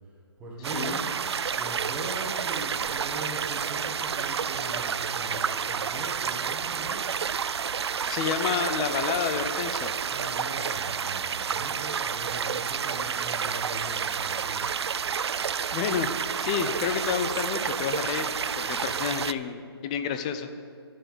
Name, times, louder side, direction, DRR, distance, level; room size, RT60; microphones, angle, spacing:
voice 1, 0.4-1.1 1.5-7.0 10.1-14.7 18.8-19.0, right 2 dB, 10° right, -3 dB, 1.5 m, -40 dB
sound 1, 0.6-19.3, right 7 dB, 75° right, 0.4 m, -30 dB
voice 2, 8.1-9.9 15.7-16.1 16.4-20.5, left 7 dB, 15° left, 9 dB, 0.4 m, -29 dB
11.0 x 7.0 x 8.1 m, 2.2 s
hypercardioid pair, 160°, 14 cm